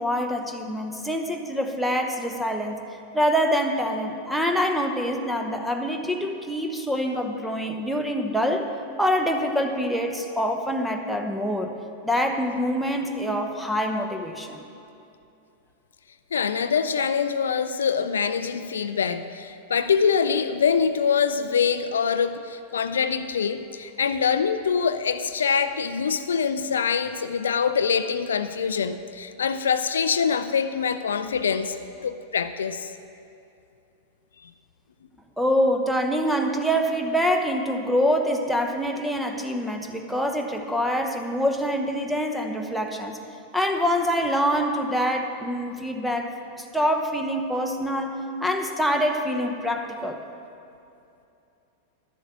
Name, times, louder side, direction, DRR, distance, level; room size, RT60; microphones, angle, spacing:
voice 1, 0.0-2.8 3.1-8.7 9.0-11.8 12.0-14.6 35.4-43.2 43.5-50.2, equal, ahead, 3 dB, 0.9 m, -25 dB
voice 2, 16.3-32.9, left 6 dB, 65° left, 11 dB, 0.4 m, -24 dB
11.5 x 7.8 x 7.2 m, 2.7 s
figure-of-eight pair, 90°, 0 cm